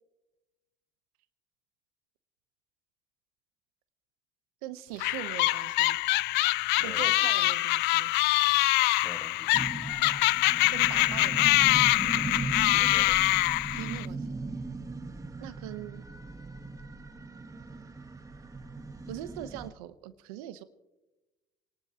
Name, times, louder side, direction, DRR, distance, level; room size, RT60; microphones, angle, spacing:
voice 1, 4.6-6.0 6.8-8.1 10.7-11.8 13.7-14.3 15.4-16.0 19.1-20.6, right 13 dB, 90° right, 12 dB, 0.8 m, -41 dB
sound 1, 5.0-14.1, left 19 dB, 70° left, 0.4 m, -24 dB
voice 2, 6.8-7.3 9.0-9.5 12.7-13.4, left 1 dB, 10° left, 8 dB, 1.4 m, -46 dB
sound 2, 9.5-19.7, right 3 dB, 20° right, 1.3 m, -38 dB
29.0 x 11.5 x 2.9 m, 1.1 s
supercardioid pair, 80°, 18 cm